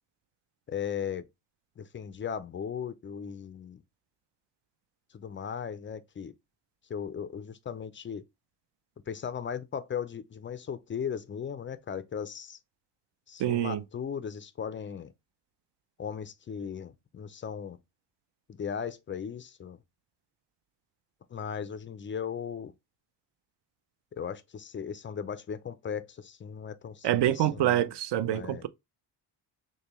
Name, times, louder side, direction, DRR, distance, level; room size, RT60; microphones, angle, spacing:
voice 1, 0.7-1.3 1.8-3.8 5.1-6.3 6.9-8.2 9.1-12.6 13.3-15.1 16.0-17.8 18.5-19.8 21.3-22.7 24.1-27.9 28.2-28.7, left 7 dB, 25° left, 0.4 m, -37 dB
voice 2, 13.4-13.8 27.0-28.7, right 12 dB, 60° right, 0.6 m, -26 dB
6.5 x 2.2 x 3.0 m
cardioid pair, 100°, 47 cm